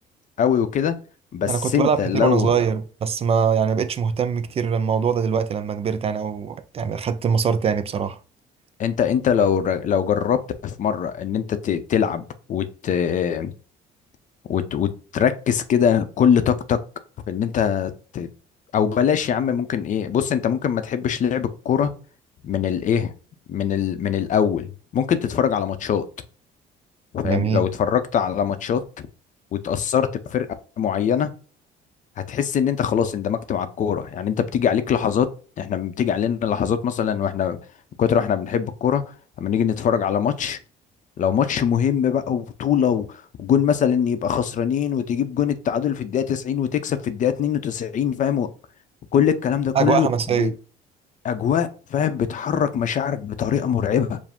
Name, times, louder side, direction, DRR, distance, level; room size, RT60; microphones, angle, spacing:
voice 1, 0.4-1.0 1.3-2.5 8.8-13.5 14.4-16.8 17.3-18.3 18.7-21.9 22.4-23.1 23.5-26.0 27.1-28.8 29.5-30.5 30.8-31.3 32.2-35.3 35.6-37.6 38.0-39.0 39.4-40.6 41.2-48.5 49.1-50.5 51.2-54.2, left 8 dB, 50° left, 0.6 m, -22 dB
voice 2, 1.5-8.2 27.2-27.7 49.7-50.5, right 6 dB, 35° right, 0.4 m, -22 dB
4.9 x 2.0 x 3.4 m
cardioid pair, 110°, 17 cm